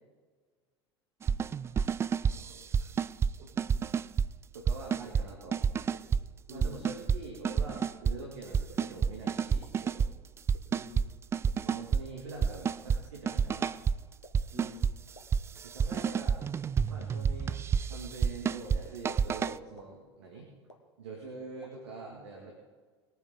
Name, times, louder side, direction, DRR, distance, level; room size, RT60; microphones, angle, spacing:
sound 1, 1.2-4.3 4.7-5.2 5.5-6.2 6.5-7.2 7.4-8.2 8.5-10.1 10.5-11.1 11.3-12.0 12.4-13.0 13.3-14.0 14.3-14.9 15.3-19.6, right 6 dB, 20° right, 0.3 m, -29 dB
voice 1, 2.2-2.9 3.4-3.5 6.5-7.0 10.7-11.1 14.5-14.9, left 1 dB, 45° right, 1 dB, 3.9 m, -49 dB
voice 2, 4.5-5.9 6.5-10.1 11.6-13.7 15.6-16.4 16.9-17.6 17.8-20.5 21.0-22.5, right 3 dB, 70° right, -1 dB, 2.3 m, -44 dB
sound 2, 5.0-5.1 5.9-6.0 6.8-6.9 7.8-7.9 8.7-8.8 9.6-9.7 10.5-10.6 11.5-11.6 12.4-12.5 13.3-13.4 14.2-14.3 15.2-15.3 16.1-16.2 17.0-17.1 17.9-18.0 18.8-18.9 19.8-19.9 20.7-20.8 21.6-21.7, left 1 dB, 85° left, 1.6 m, -52 dB
21.0 x 9.2 x 4.0 m, 1.5 s
figure-of-eight pair, 75°, 15 cm